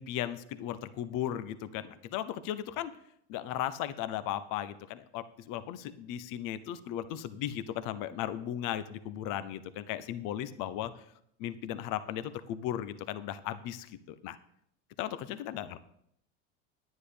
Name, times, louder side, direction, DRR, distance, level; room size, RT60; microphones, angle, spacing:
voice 1, 0.0-2.9 3.3-11.0 11.4-14.4 15.0-15.8, left 11 dB, 55° left, 13 dB, 1.0 m, -36 dB
10.5 x 9.5 x 5.1 m, 0.70 s
hypercardioid pair, 90°, 37 cm